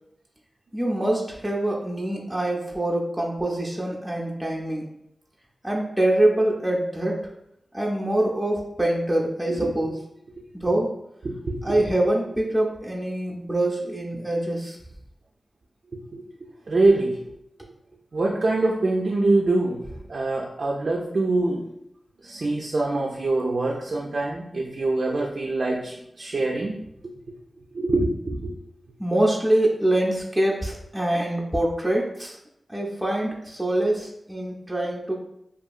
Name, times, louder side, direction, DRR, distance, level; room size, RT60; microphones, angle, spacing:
voice 1, 0.7-4.8 5.6-7.3 7.7-9.9 10.6-10.9 11.6-14.8 29.0-32.3 32.7-35.2, right 1 dB, 10° right, -3 dB, 0.5 m, -24 dB
voice 2, 11.2-11.7 16.1-16.2 16.7-17.2 18.1-21.6 22.2-26.8 27.7-28.5, right 2 dB, 65° right, -1 dB, 0.3 m, -24 dB
2.7 x 2.4 x 2.3 m, 0.79 s
cardioid pair, 60°, 0 cm